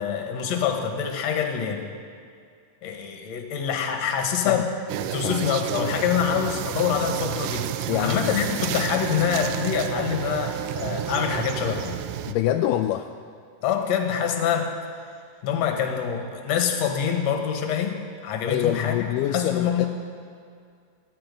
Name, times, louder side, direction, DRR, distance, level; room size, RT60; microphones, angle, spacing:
voice 1, 0.0-1.9 2.8-4.7 5.1-12.0 13.6-14.7 15.4-19.0 19.3-19.9, left 8 dB, 60° left, 4 dB, 2.1 m, -25 dB
sound 1, 4.9-12.3, right 11 dB, 85° right, 1.8 m, -30 dB
voice 2, 7.9-8.5 12.3-13.1 18.5-19.9, left 11 dB, 85° left, 6 dB, 1.9 m, -25 dB
17.5 x 12.5 x 5.2 m, 2.3 s
omnidirectional pair, 4.2 m